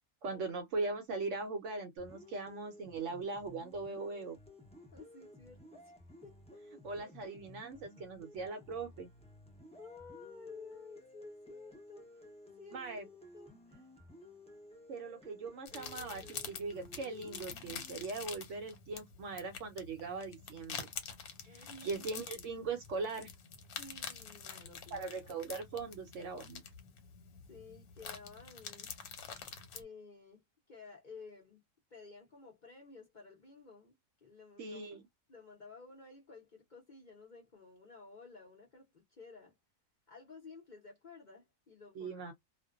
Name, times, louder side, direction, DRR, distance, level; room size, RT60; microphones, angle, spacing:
voice 1, 0.2-4.4 6.8-9.1 12.7-13.1 14.9-20.9 21.4-23.3 24.9-26.6 34.6-35.0 42.0-42.3, right 3 dB, 65° right, 0.9 m, -40 dB
sound 1, 2.0-18.0, left 1 dB, 10° left, 0.4 m, -56 dB
voice 2, 4.9-5.9 6.2-6.6 9.8-12.3 12.6-13.9 21.5-22.1 23.8-25.4 27.5-28.9 29.7-31.6 31.9-33.9 34.2-34.9 35.3-39.6 40.1-42.3, left 4 dB, 45° left, 0.7 m, -54 dB
sound 2, 15.7-29.8, left 7 dB, 85° left, 1.2 m, -47 dB
2.5 x 2.1 x 2.3 m
omnidirectional pair, 1.5 m